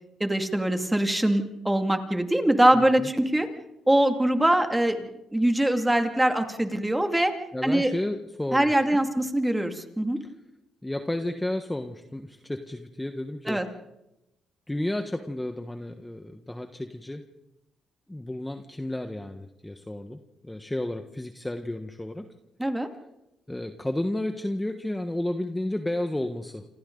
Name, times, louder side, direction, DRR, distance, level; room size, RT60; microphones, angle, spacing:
voice 1, 0.2-3.5 3.9-7.3 7.6-7.9 8.5-10.2 13.5-13.6 22.6-22.9, right 1 dB, 10° right, 5 dB, 2.4 m, -23 dB
voice 2, 2.7-3.1 7.5-9.0 10.2-10.3 10.8-13.6 14.7-17.2 18.1-22.3 23.5-26.7, left 1 dB, 10° left, 6 dB, 1.4 m, -32 dB
28.5 x 26.0 x 4.0 m, 0.91 s
cardioid pair, 90°, 0 cm